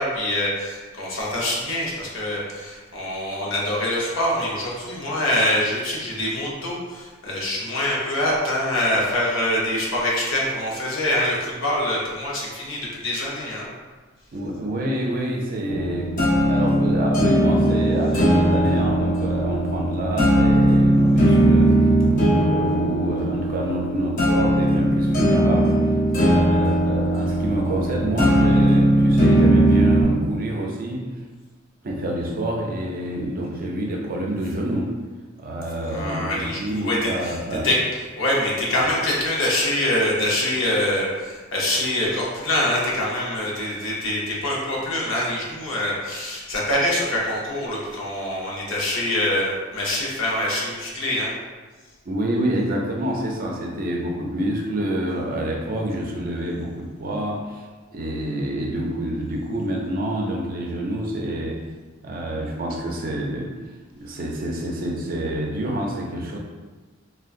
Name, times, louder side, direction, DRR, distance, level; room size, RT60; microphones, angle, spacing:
voice 1, 0.0-13.7 35.9-37.4 37.6-51.3, left 1 dB, 70° left, -4 dB, 0.8 m, -24 dB
voice 2, 14.3-16.2 16.5-21.8 22.1-25.8 26.1-31.1 31.8-34.9 35.4-37.7 52.1-57.7 57.9-61.6 62.0-63.5 64.0-66.4, right 1 dB, 45° right, 0 dB, 0.5 m, -27 dB
sound 1, 15.7-30.0, right 1 dB, 40° left, 0.8 m, -19 dB
3.6 x 2.2 x 2.5 m, 1.4 s
head